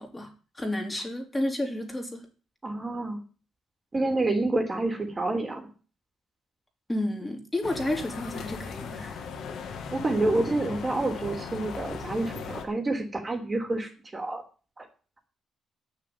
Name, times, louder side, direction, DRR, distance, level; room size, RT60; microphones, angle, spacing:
voice 1, 0.0-2.2 6.9-9.2, left 1 dB, 15° left, 3 dB, 3.4 m, -31 dB
voice 2, 2.6-3.2 3.9-5.7 9.9-14.4 14.8-14.9, right 2 dB, 25° right, 4 dB, 3.1 m, -28 dB
sound 1, 7.6-12.6, left 6 dB, 70° left, 2.2 m, -38 dB
9.3 x 6.9 x 8.9 m, 0.37 s
cardioid pair, 90°, 0 cm